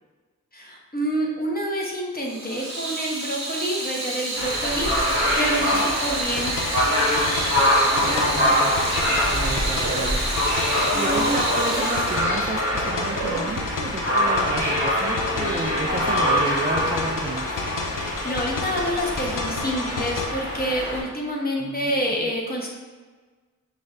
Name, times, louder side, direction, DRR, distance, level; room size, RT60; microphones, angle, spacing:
voice 1, 0.5-4.9 5.3-6.5 10.9-11.4 17.9-22.7, equal, 30° left, -2 dB, 0.9 m, -27 dB
Water tap faucet / Sink (filling or washing), 2.2-13.6, right 2 dB, 60° right, 0.8 m, -30 dB
sound 1, 4.3-21.0, left 1 dB, 45° left, 1.4 m, -24 dB
sound 2, 6.2-20.3, left 4 dB, 85° left, 0.5 m, -32 dB
voice 2, 8.0-8.8 9.0-10.7 10.9-17.5 21.5-22.3, right 3 dB, 25° right, -1 dB, 0.4 m, -32 dB
5.3 x 2.4 x 3.2 m, 1.4 s
wide cardioid pair, 75°, 31 cm